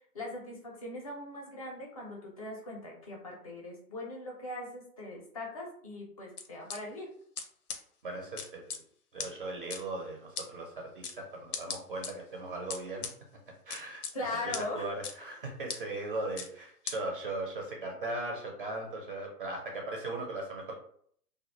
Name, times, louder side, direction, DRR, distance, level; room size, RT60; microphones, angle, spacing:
voice 1, 0.1-7.1 14.1-14.9, left 2 dB, 25° left, -1 dB, 0.4 m, -40 dB
sound 1, 6.4-6.8 7.4-7.5 7.7-7.8 8.4-8.8 9.2-9.3 9.7-9.8 10.4-10.5 11.0-11.2 11.5-12.1 12.7-13.1 13.7-14.1 14.5-14.6 15.0-15.1 15.7-15.8 16.4-16.5 16.9-17.0, left 6 dB, 75° left, 0.6 m, -37 dB
voice 2, 8.0-8.8 9.1-13.1 13.7-20.7, right 2 dB, 40° right, 0 dB, 0.4 m, -38 dB
2.2 x 2.0 x 2.8 m, 0.62 s
figure-of-eight pair, 125°, 46 cm